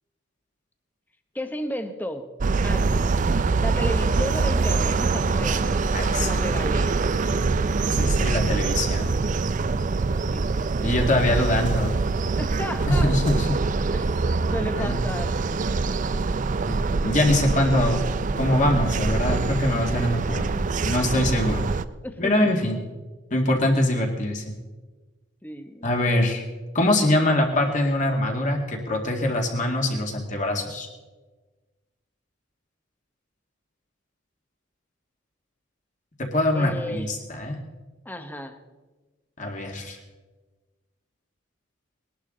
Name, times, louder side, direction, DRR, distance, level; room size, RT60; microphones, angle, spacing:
voice 1, 1.3-2.3 2.6-3.1 3.4-5.8 6.2-7.0 10.3-10.9 12.4-13.1 13.9-14.1 14.5-15.3 22.0-22.5 25.4-25.9 36.5-37.1 38.0-38.6, equal, 10° left, 7 dB, 1.0 m, -33 dB
sound 1, 2.4-21.9, right 4 dB, 40° right, 0.4 m, -24 dB
voice 2, 5.9-6.4 7.9-9.1 10.8-11.9 12.9-13.6 14.8-15.0 16.7-16.8 17.0-18.1 18.4-20.6 20.8-21.6 22.2-22.8 23.3-24.4 25.8-26.4 26.7-30.9 36.3-37.6 39.4-40.0, left 1 dB, 40° left, 2 dB, 2.1 m, -23 dB
20.5 x 11.5 x 3.8 m, 1.3 s
head